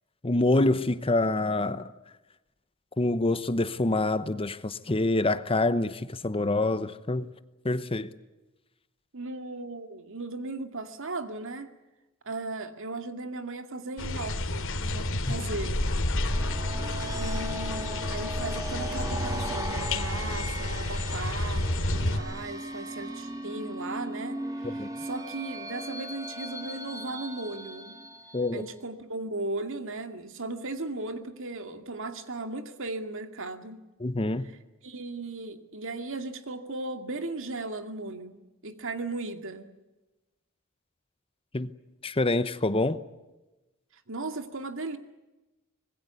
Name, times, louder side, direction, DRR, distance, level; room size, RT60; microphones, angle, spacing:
voice 1, 0.2-1.9 3.0-7.3 7.6-8.1 15.2-15.3 24.6-24.9 28.3-28.7 34.0-34.5 41.5-41.7 42.0-43.0, left 2 dB, 25° left, 0.9 m, -26 dB
voice 2, 9.1-11.7 12.2-15.9 17.1-28.0 28.5-33.8 34.8-39.7 44.1-45.0, right 2 dB, 65° right, 2.4 m, -37 dB
sound 1, 14.0-22.2, left 1 dB, 65° left, 2.6 m, -30 dB
sound 2, 16.1-28.7, right 1 dB, 15° right, 2.8 m, -38 dB
25.5 x 21.0 x 8.3 m
head